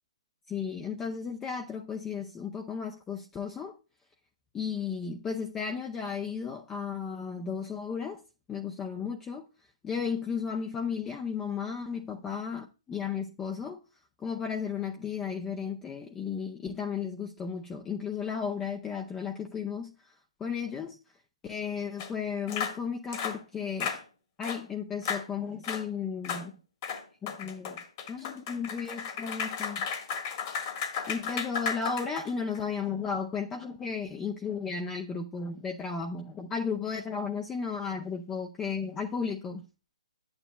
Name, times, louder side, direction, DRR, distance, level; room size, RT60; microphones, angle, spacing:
voice 1, 0.5-3.8 4.5-8.2 8.5-9.5 9.8-13.8 14.2-21.0 21.4-24.0 24.4-26.5 27.2-27.8 28.1-29.9 31.1-39.6, left 6 dB, 10° left, 0.5 m, -34 dB
sound 1, 22.0-22.1 22.5-22.8 23.1-23.4 23.8-24.0 24.4-24.6 25.0-25.3 25.6-25.8 26.2-26.5 26.8-32.6, left 6 dB, 35° left, 1.5 m, -34 dB
11.0 x 8.7 x 2.3 m
figure-of-eight pair, 130°, 3 cm